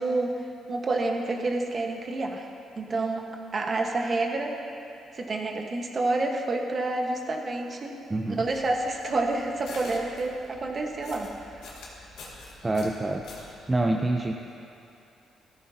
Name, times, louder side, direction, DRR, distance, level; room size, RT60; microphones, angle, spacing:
voice 1, 0.0-2.5 2.8-3.2 3.5-4.5 5.1-7.9 8.4-11.3 11.6-11.7, right 2 dB, 40° right, 2 dB, 1.4 m, -28 dB
voice 2, 8.1-8.4 12.6-13.2 13.7-14.3, right 2 dB, 20° right, 2 dB, 0.6 m, -26 dB
sound 1, 8.3-13.6, left 3 dB, 90° left, 2.1 m, -46 dB
15.0 x 13.5 x 2.9 m, 2.7 s
cardioid pair, 90°, 0 cm